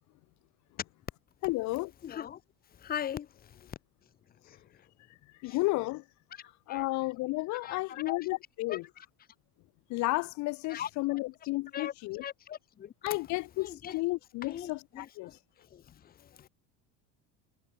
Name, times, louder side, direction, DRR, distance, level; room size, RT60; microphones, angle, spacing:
voice 1, 1.4-1.9 5.4-6.0 6.7-8.8 9.9-12.2 13.0-15.3, left 21 dB, 55° left, 1.0 m, -32 dB
voice 2, 2.0-2.4 2.7-3.8 4.4-4.9 5.5-5.6 6.3-6.9 7.5-8.1 8.7-9.1 10.7-10.9 11.7-11.9 12.2-12.9 13.6-14.0 14.4-16.5, left 10 dB, 25° left, 1.1 m, -41 dB
cardioid pair, 145°, 34 cm